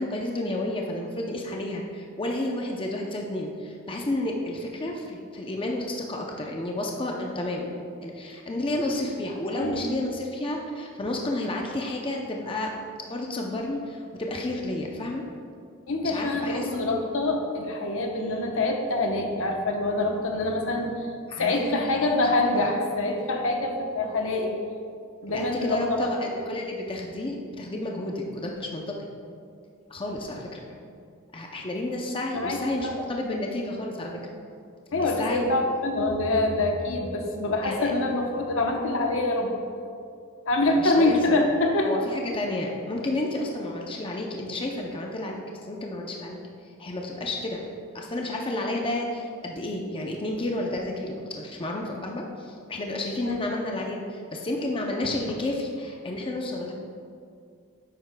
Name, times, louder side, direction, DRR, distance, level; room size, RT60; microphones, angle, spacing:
voice 1, 0.0-12.7 13.1-15.2 16.0-16.7 21.3-22.3 22.5-22.7 25.3-29.1 29.9-30.6 31.3-34.2 35.0-35.6 37.6-37.9 40.7-41.4 41.8-45.4 45.7-46.4 46.8-47.6 47.9-56.7, left 1 dB, 25° left, 0 dB, 0.6 m, -31 dB
voice 2, 9.5-9.9 15.9-20.9 21.4-24.6 25.2-26.3 32.3-32.9 34.9-39.5 40.5-41.9 53.2-53.4, left 2 dB, 65° left, 2 dB, 0.9 m, -25 dB
10.5 x 7.9 x 2.2 m, 2.3 s
head